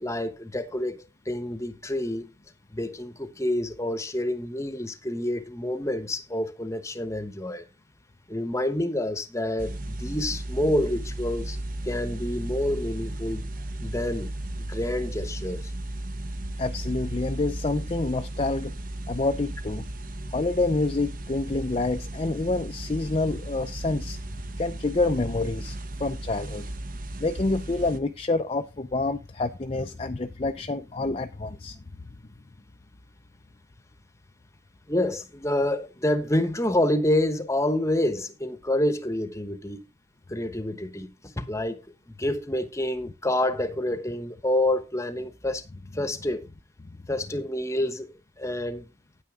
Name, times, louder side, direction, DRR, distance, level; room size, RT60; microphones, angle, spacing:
voice 1, 0.0-2.3 2.7-7.6 8.3-11.6 11.8-13.4 13.8-14.3 14.6-15.7 34.9-39.9 40.3-41.8 42.1-45.6 45.9-46.5 47.1-48.1 48.4-48.9, left 1 dB, 15° left, 1.1 m, -28 dB
Ambient Unfinished Basement, 9.6-28.0, right 1 dB, 45° right, 1.1 m, -35 dB
voice 2, 16.6-18.7 19.1-19.9 20.3-24.2 24.6-26.7 27.2-31.8, left 2 dB, 30° left, 0.6 m, -27 dB
9.4 x 9.4 x 3.7 m
head